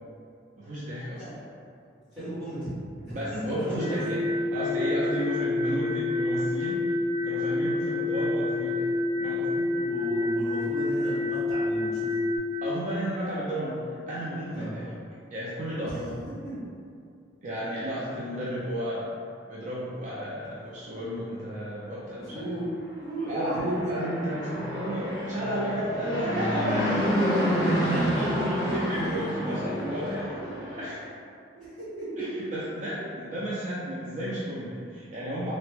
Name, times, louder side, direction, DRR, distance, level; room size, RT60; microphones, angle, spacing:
voice 1, 0.6-1.2 3.1-4.2 4.5-6.8 7.2-9.7 12.6-14.9 15.3-16.2 17.4-19.1 19.5-22.5 23.3-27.3 27.6-31.1 32.2-35.5, equal, 40° right, -8 dB, 0.4 m, -33 dB
voice 2, 2.1-2.7 3.0-3.4 3.7-4.0 9.7-12.1 14.5-14.7 15.8-15.9 16.4-16.6 22.2-22.7 23.0-23.7 24.4-24.5 27.9-28.9 31.5-32.3, right 1 dB, 5° left, -13 dB, 1.5 m, -35 dB
sound 1, 3.8-12.4, left 2 dB, 60° right, 0.9 m, -28 dB
Fixed-wing aircraft airplane, 23.5-30.9, equal, 20° left, 0.8 m, -29 dB
sound 2, 24.4-30.2, left 1 dB, 60° left, 0.4 m, -40 dB
3.3 x 2.0 x 3.2 m, 2.4 s
head